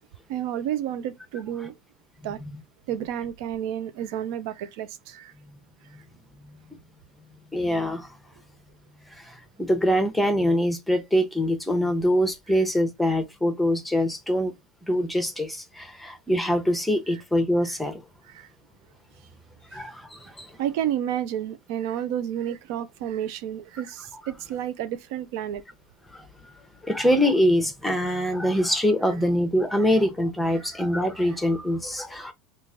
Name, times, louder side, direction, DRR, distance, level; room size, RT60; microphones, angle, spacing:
voice 1, 0.3-1.7 2.2-2.4 2.9-5.3 17.6-17.8 18.3-18.5 19.7-19.8 20.6-25.6 30.6-30.7, right 10 dB, 70° right, 0.5 m, -31 dB
voice 2, 7.5-8.1 9.1-14.5 14.9-18.0 19.7-20.5 26.1-26.5 26.8-32.3, equal, 5° left, 0.8 m, -24 dB
3.0 x 2.4 x 3.7 m
supercardioid pair, 120°, 2 cm